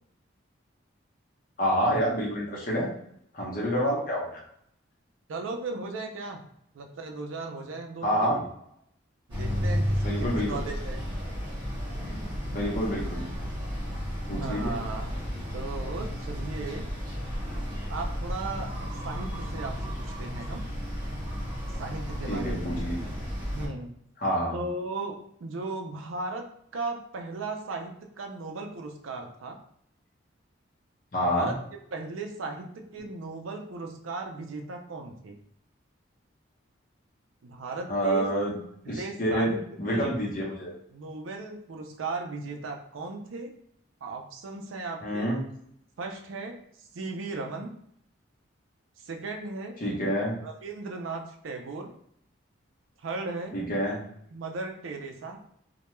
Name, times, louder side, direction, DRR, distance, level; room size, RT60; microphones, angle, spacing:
voice 1, 1.6-2.9 3.3-4.4 8.0-8.4 10.0-10.5 12.5-13.2 14.2-14.8 22.3-23.1 24.2-24.6 31.1-31.5 37.9-38.5 38.9-40.7 45.0-45.4 49.8-50.3 53.5-54.0, equal, 45° left, -3 dB, 0.7 m, -28 dB
voice 2, 5.3-6.4 6.7-8.4 9.3-11.0 14.3-15.1 15.5-16.9 17.9-20.6 21.8-22.7 23.4-23.9 24.5-26.5 26.7-29.6 31.2-31.5 31.9-35.4 37.4-38.3 38.8-39.6 39.9-40.1 40.9-43.5 44.0-45.3 46.0-46.6 46.9-47.7 49.0-49.8 50.4-51.9 53.0-53.6 54.3-55.4, right 3 dB, 85° right, 3 dB, 0.4 m, -36 dB
sound 1, 9.3-23.7, equal, 25° right, 1.0 m, -33 dB
2.2 x 2.2 x 3.0 m, 0.70 s
head